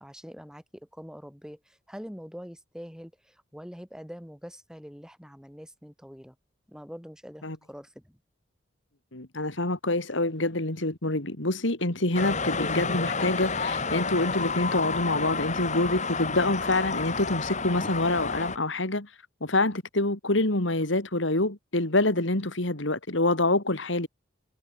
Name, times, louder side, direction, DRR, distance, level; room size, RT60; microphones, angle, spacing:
voice 1, 0.0-6.4 6.7-8.2, equal, 5° right, 6.0 m, -44 dB
voice 2, 9.1-19.1 19.4-24.1, left 2 dB, 75° left, 3.1 m, -26 dB
sound 1, 12.1-18.6, left 4 dB, 40° left, 4.3 m, -30 dB
head